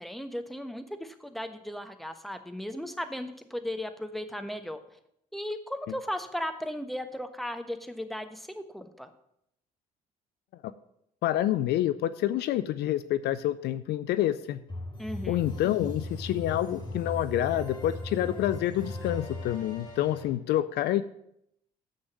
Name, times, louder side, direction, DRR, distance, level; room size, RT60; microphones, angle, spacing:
voice 1, 0.0-4.8 5.3-9.1 15.0-15.4, left 1 dB, ahead, 9 dB, 1.1 m, -36 dB
voice 2, 11.2-14.6 15.3-21.0, left 13 dB, 60° left, 15 dB, 0.5 m, -28 dB
sound 1, 14.7-20.3, left 1 dB, 25° left, 3.4 m, -38 dB
7.9 x 6.5 x 7.2 m, 0.75 s
hypercardioid pair, 50°, 19 cm